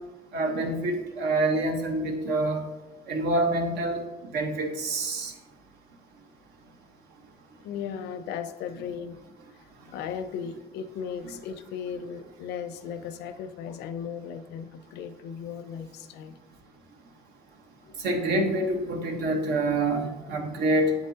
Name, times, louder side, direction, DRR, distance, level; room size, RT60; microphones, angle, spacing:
voice 1, 0.3-2.6 3.1-4.0 4.3-5.3 18.0-20.9, right 2 dB, 80° right, 4 dB, 1.2 m, -26 dB
voice 2, 7.6-9.2 9.9-16.4 17.8-18.0, left 7 dB, 85° left, 11 dB, 0.6 m, -36 dB
8.2 x 7.7 x 2.8 m, 1.1 s
cardioid pair, 110°, 17 cm